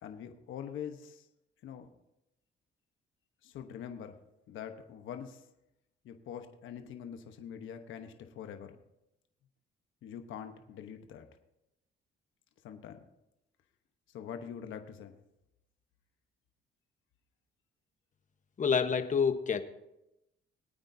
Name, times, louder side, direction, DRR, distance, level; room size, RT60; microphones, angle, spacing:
voice 1, 0.0-1.3 1.6-1.9 3.4-4.2 4.5-5.4 6.0-8.8 10.0-11.3 12.6-13.1 14.1-15.2, left 8 dB, 80° left, 6 dB, 1.0 m, -44 dB
voice 2, 18.6-19.6, left 6 dB, 40° left, 9 dB, 1.1 m, -27 dB
21.5 x 9.0 x 2.7 m, 0.87 s
cardioid pair, 90°, 20 cm